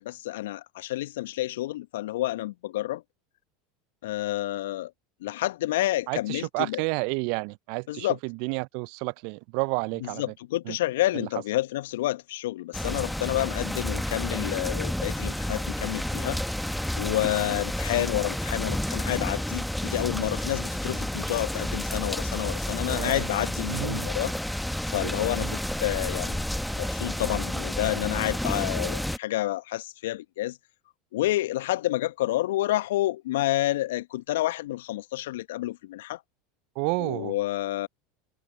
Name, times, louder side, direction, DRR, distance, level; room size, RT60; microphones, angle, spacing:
voice 1, 0.0-3.0 4.0-4.9 5.2-6.8 7.9-8.2 10.0-16.4 17.0-24.3 24.9-26.4 26.7-30.6 31.1-36.2 37.0-37.9, left 15 dB, 65° left, 1.2 m, -29 dB
voice 2, 6.1-10.2 10.7-10.8 11.1-11.3 22.9-23.3 23.7-24.1 25.0-25.6 36.8-37.4, right 36 dB, 55° right, 0.4 m, -31 dB
sound 1, 12.7-29.2, left 1 dB, 5° left, 1.3 m, -30 dB
figure-of-eight pair, 80°, 0 cm